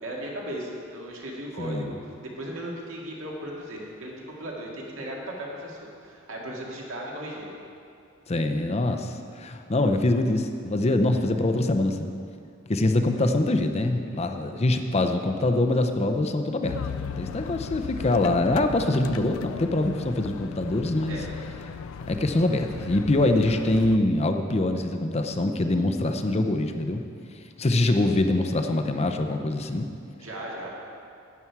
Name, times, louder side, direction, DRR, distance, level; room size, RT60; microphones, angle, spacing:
voice 1, 0.0-1.9 2.4-7.5 21.1-21.3 30.2-30.7, right 1 dB, 70° right, -3 dB, 2.0 m, -36 dB
voice 2, 1.6-1.9 8.3-12.1 12.7-16.8 17.2-21.2 22.1-27.0 27.6-29.9, left 2 dB, 30° left, 6 dB, 0.6 m, -24 dB
sound 1, 16.6-24.0, left 6 dB, 85° left, 0.4 m, -37 dB
11.5 x 8.4 x 4.7 m, 2.4 s
head